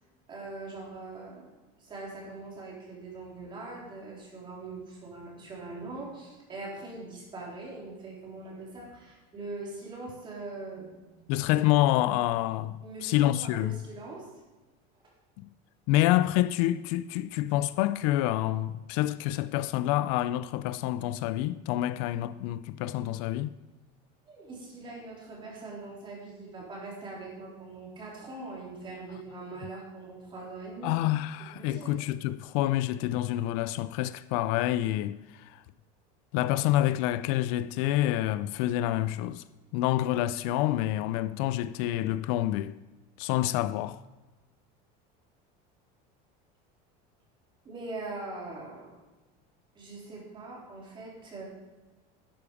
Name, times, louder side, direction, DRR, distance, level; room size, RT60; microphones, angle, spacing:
voice 1, 0.3-1.5 1.8-11.2 12.8-14.3 24.3-31.0 31.5-31.9 47.6-48.9 49.8-51.4, right 3 dB, 25° right, 3.8 m, -42 dB
voice 2, 11.3-13.8 15.4-15.5 15.9-23.5 30.8-35.6 36.3-39.4 39.7-42.8 43.2-44.0, left 14 dB, 65° left, 0.5 m, -27 dB
12.0 x 9.9 x 5.0 m
cardioid pair, 165°, 20 cm